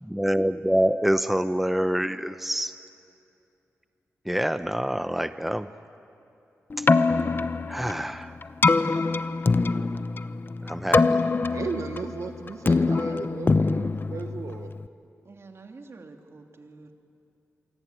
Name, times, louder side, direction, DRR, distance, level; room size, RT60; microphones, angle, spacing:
voice 1, 0.0-2.7 4.3-5.7 7.7-8.3 10.6-11.2, equal, 5° right, 11 dB, 0.8 m, -26 dB
Keyboard (musical), 6.7-14.9, left 3 dB, 40° left, 0.8 m, -24 dB
voice 2, 11.5-14.7, right 5 dB, 70° right, 7 dB, 1.2 m, -35 dB
voice 3, 15.2-16.9, right 3 dB, 50° right, 4 dB, 2.8 m, -47 dB
27.5 x 23.5 x 9.0 m, 2.6 s
cardioid pair, 50°, 5 cm